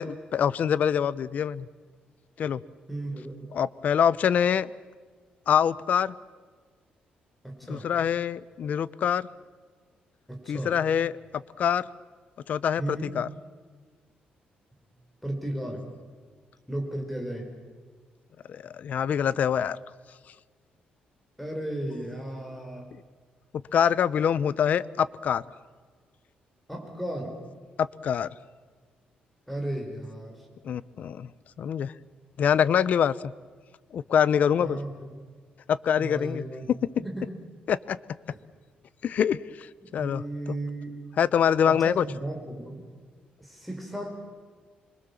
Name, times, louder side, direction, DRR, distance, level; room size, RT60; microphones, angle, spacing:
voice 1, 0.0-1.7 2.4-2.6 3.5-4.7 5.5-6.1 7.7-9.3 10.5-11.1 11.6-11.9 12.5-13.3 18.5-19.8 23.7-25.4 27.8-28.3 30.6-31.3 31.6-31.9 32.4-33.1 33.9-34.8 35.7-36.4 37.7-38.0 39.0-39.7 39.9-40.6 41.2-42.0, left 8 dB, 60° left, 19 dB, 0.7 m, -25 dB
voice 2, 2.9-3.3 7.4-7.9 10.3-10.8 12.8-13.1 15.2-15.8 16.7-17.5 21.4-22.9 26.7-27.4 29.5-30.4 34.5-35.1 36.0-36.7 37.0-37.3 40.0-40.9 41.7-42.8 43.4-44.1, right 1 dB, ahead, 2 dB, 5.3 m, -34 dB
26.0 x 23.5 x 7.2 m, 1.6 s
cardioid pair, 125°, 3 cm